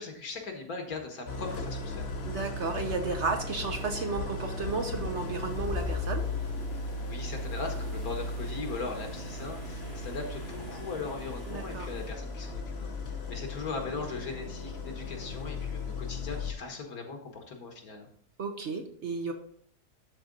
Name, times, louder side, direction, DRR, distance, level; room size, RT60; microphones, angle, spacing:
voice 1, 0.0-2.1 7.1-12.9 13.3-18.1, left 4 dB, 70° left, 3 dB, 1.9 m, -39 dB
Idling, 1.3-16.5, left 3 dB, 50° left, 1.0 m, -36 dB
voice 2, 2.2-6.2 11.5-11.9 18.4-19.3, right 4 dB, 55° right, 5 dB, 1.0 m, -33 dB
sound 1, 3.8-12.1, equal, 70° right, 4.3 m, -46 dB
12.0 x 4.1 x 3.9 m, 0.65 s
omnidirectional pair, 1.7 m